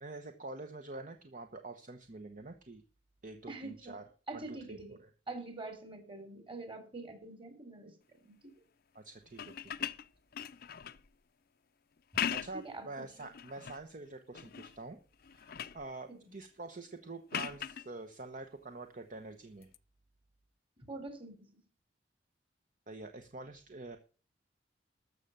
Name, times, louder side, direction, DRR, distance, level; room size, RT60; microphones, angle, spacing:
voice 1, 0.0-2.8 3.2-4.0 4.3-4.6 8.9-9.9 12.3-15.0 15.3-19.7 22.9-24.0, right 3 dB, 45° right, 7 dB, 1.0 m, -46 dB
voice 2, 3.5-4.0 4.3-7.9 8.2-8.3 12.5-12.9 16.1-16.3 20.9-21.4, right 2 dB, 30° right, 9 dB, 3.1 m, -45 dB
sound 1, 9.3-11.1 12.0-12.7 13.2-13.8 14.3-14.8 15.1-15.9 17.3-17.9 19.6-19.8, left 9 dB, 60° left, 0.6 m, -39 dB
13.5 x 6.6 x 7.3 m, 0.39 s
head